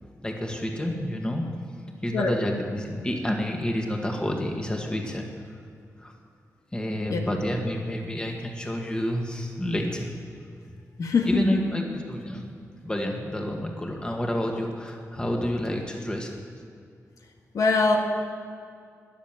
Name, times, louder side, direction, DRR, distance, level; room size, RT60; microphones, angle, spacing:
voice 1, 0.0-1.4 1.8-5.3 6.0-6.1 6.7-10.1 11.2-16.3, left 1 dB, 15° left, 1 dB, 1.8 m, -29 dB
voice 2, 11.0-11.6 17.5-18.0, left 4 dB, 70° left, 2 dB, 1.7 m, -23 dB
21.0 x 7.4 x 9.0 m, 2.3 s
wide cardioid pair, 135°, 6 cm